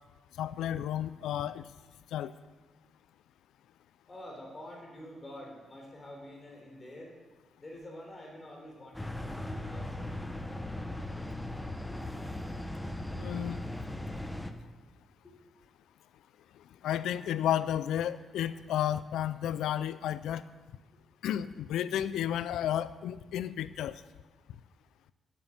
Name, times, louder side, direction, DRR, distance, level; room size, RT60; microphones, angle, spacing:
voice 1, 0.4-1.6 2.1-2.3 13.1-13.6 16.8-20.4 21.2-24.0, left 11 dB, 90° left, 15 dB, 0.3 m, -32 dB
voice 2, 4.1-7.2 7.6-10.2 13.3-13.4 15.2-15.3, left 1 dB, 35° left, 0 dB, 3.8 m, -47 dB
sound 1, 8.9-14.5, left 1 dB, 10° left, 0.9 m, -38 dB
9.1 x 7.1 x 7.8 m, 1.3 s
cardioid pair, 65°, 0 cm